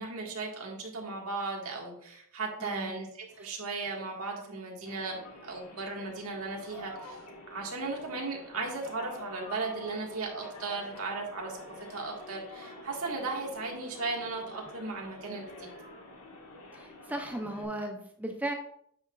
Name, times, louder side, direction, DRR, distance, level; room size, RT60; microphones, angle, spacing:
voice 1, 0.0-7.2 7.5-11.6 11.9-15.7, right 3 dB, 75° right, -1 dB, 1.8 m, -36 dB
voice 2, 2.6-3.0 3.4-3.5 16.7-18.5, right 1 dB, 5° right, 3 dB, 0.6 m, -36 dB
sound 1, 4.9-17.7, left 1 dB, 80° left, 1.7 m, -47 dB
9.3 x 6.1 x 2.4 m, 0.68 s
head